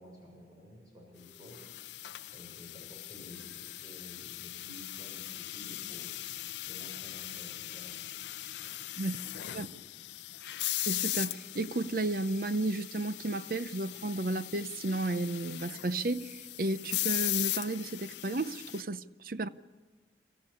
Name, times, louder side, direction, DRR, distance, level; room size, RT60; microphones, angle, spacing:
voice 1, 0.0-1.6 2.3-6.1 6.6-8.0 8.6-8.7 9.3-9.8, left 1 dB, 20° right, 6.7 m, -52 dB
sound 1, 1.4-18.8, left 15 dB, 85° left, 0.6 m, -39 dB
voice 2, 10.9-19.5, right 2 dB, 55° right, 0.7 m, -33 dB
24.5 x 14.5 x 8.5 m
head